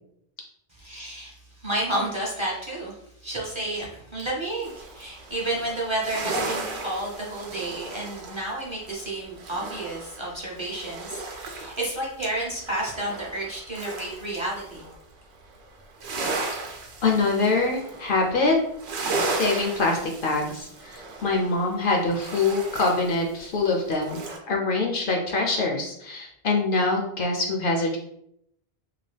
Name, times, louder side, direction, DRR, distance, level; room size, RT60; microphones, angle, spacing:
voice 1, 0.7-14.9, right 1 dB, 30° right, -5 dB, 0.7 m, -31 dB
sound 1, 4.6-11.9 12.2-15.0 15.3-24.4, right 3 dB, 80° right, 0.9 m, -35 dB
voice 2, 17.0-18.6 19.2-24.2 24.5-28.0, left 3 dB, 60° left, 1 dB, 0.7 m, -24 dB
2.9 x 2.3 x 3.2 m, 0.75 s
omnidirectional pair, 1.1 m